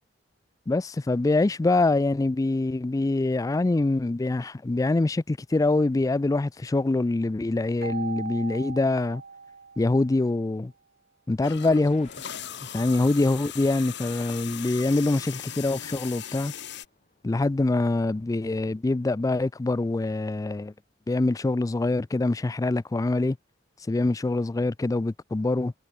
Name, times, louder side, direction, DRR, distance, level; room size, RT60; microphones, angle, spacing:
voice 1, 0.7-9.2 9.8-10.7 11.3-12.1 12.7-16.5 17.2-20.7 21.1-23.4 23.9-25.7, left 2 dB, 20° left, 0.3 m, -24 dB
Keyboard (musical), 7.8-10.4, right 4 dB, 55° right, 1.5 m, -39 dB
sound 1, 11.4-16.9, left 9 dB, 65° left, 2.2 m, -39 dB
sound 2, 11.9-19.0, left 3 dB, 40° left, 6.3 m, -56 dB
head